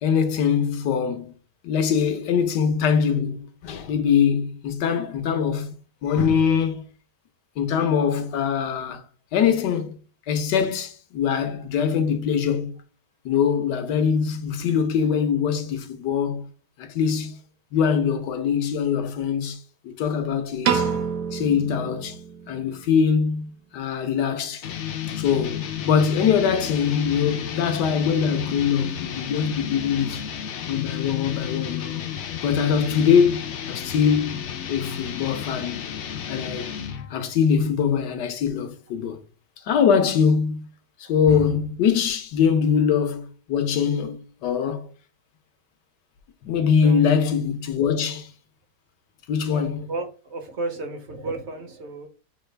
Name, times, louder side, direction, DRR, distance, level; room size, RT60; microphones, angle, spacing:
voice 1, 0.0-1.3 1.6-5.8 6.0-6.8 7.6-9.0 9.3-9.9 10.3-12.8 13.2-16.5 16.8-17.4 17.7-20.9 21.3-22.2 22.5-24.7 25.2-30.2 30.7-32.1 32.4-34.4 34.7-35.9 36.3-36.7 37.1-39.2 39.6-40.7 41.0-44.9 46.4-48.3 49.3-49.8, left 7 dB, 85° left, 1.4 m, -23 dB
Piano, 20.6-22.9, right 7 dB, 80° right, 1.3 m, -27 dB
sound 1, 24.6-37.2, left 9 dB, 70° left, 0.6 m, -32 dB
voice 2, 49.5-52.1, right 3 dB, 50° right, 1.0 m, -33 dB
6.7 x 2.3 x 3.2 m
omnidirectional pair, 1.8 m